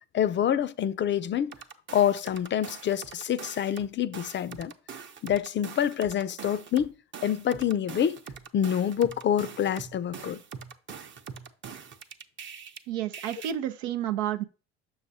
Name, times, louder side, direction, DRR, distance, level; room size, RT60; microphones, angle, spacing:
voice 1, 0.1-1.5 1.9-4.7 5.2-6.9 7.2-8.2 8.5-10.4, left 9 dB, 40° left, 0.4 m, -26 dB
sound 1, 1.5-3.9 4.1-12.8 13.1-13.5, right 6 dB, 40° right, 0.8 m, -43 dB
voice 2, 12.9-14.4, right 11 dB, 90° right, 0.6 m, -30 dB
6.4 x 6.3 x 2.8 m
hypercardioid pair, 65°, 31 cm